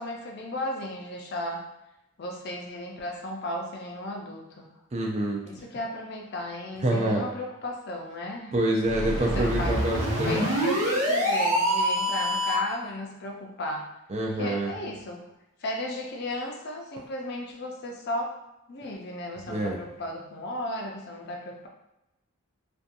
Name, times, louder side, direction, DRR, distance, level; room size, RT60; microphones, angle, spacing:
voice 1, 0.0-1.6 2.2-4.7 5.4-8.6 9.3-9.8 10.2-13.9 14.4-15.3 15.6-18.3 18.7-21.7, left 1 dB, 50° left, 1 dB, 0.4 m, -35 dB
voice 2, 4.9-5.4 6.8-7.2 8.5-10.4 14.1-14.7 19.5-19.8, right 1 dB, 30° right, -1 dB, 0.4 m, -26 dB
sound 1, 8.8-12.8, equal, 60° right, 0.8 m, -26 dB
2.7 x 2.2 x 2.5 m, 0.91 s
head